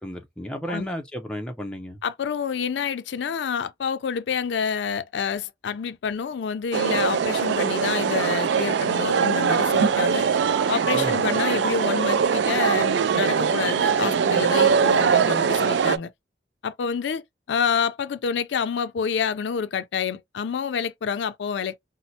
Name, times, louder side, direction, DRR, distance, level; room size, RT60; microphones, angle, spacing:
voice 1, 0.0-2.0 10.9-11.2, equal, 5° left, 0.4 m, -33 dB
voice 2, 2.0-10.3 10.7-16.1 16.6-17.2 17.5-21.8, left 6 dB, 80° left, 0.4 m, -28 dB
sound 1, 6.7-16.0, right 6 dB, 80° right, 0.3 m, -22 dB
4.2 x 2.0 x 2.7 m
head